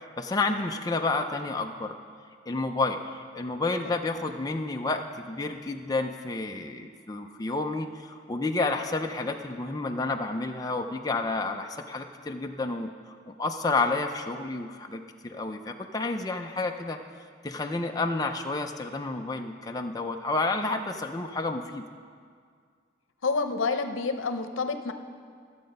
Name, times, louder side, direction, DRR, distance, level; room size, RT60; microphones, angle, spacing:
voice 1, 0.2-1.9 2.5-12.9 13.3-17.0 17.4-21.8, left 3 dB, 20° left, 3 dB, 0.4 m, -30 dB
voice 2, 23.2-24.9, left 4 dB, 85° left, 8 dB, 0.7 m, -28 dB
13.0 x 7.7 x 5.3 m, 2.1 s
head